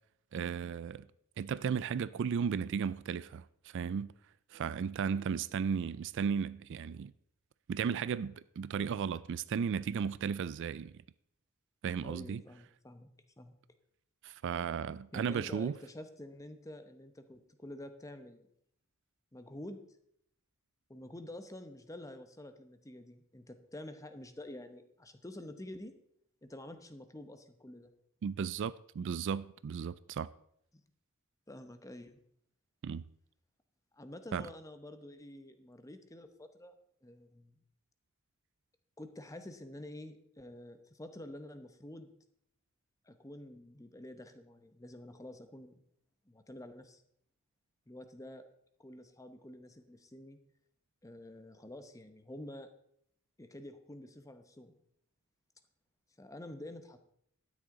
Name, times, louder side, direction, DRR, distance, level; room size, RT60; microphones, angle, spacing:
voice 1, 0.3-1.1 1.4-4.1 4.5-7.1 7.7-11.0 11.8-12.4 14.2-15.8 28.2-30.3 32.8-33.1 34.3-34.5, right 6 dB, 55° right, 0.3 m, -35 dB
voice 2, 12.0-13.1 13.4-13.5 15.1-18.4 19.3-19.8 20.9-25.9 26.4-27.9 30.7-30.8 31.5-32.2 33.9-36.7 37.0-37.6 39.0-42.1 43.1-45.8 46.3-47.0 47.9-48.4 48.8-50.4 51.0-52.7 53.4-54.7 56.2-57.0, left 1 dB, 15° left, 0.9 m, -48 dB
12.0 x 9.8 x 3.8 m
head